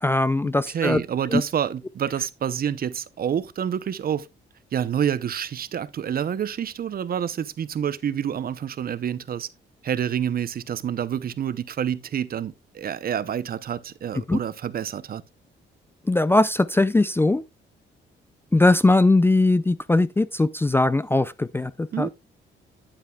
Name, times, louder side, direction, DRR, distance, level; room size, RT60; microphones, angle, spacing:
voice 1, 0.0-1.0 1.3-1.4 14.3-14.4 16.1-17.4 18.5-22.1, left 2 dB, 10° left, 0.4 m, -20 dB
voice 2, 0.7-4.3 4.7-9.5 9.8-15.2 21.9-22.1, right 9 dB, 50° right, 0.7 m, -28 dB
9.6 x 8.8 x 2.3 m
cardioid pair, 90°, 20 cm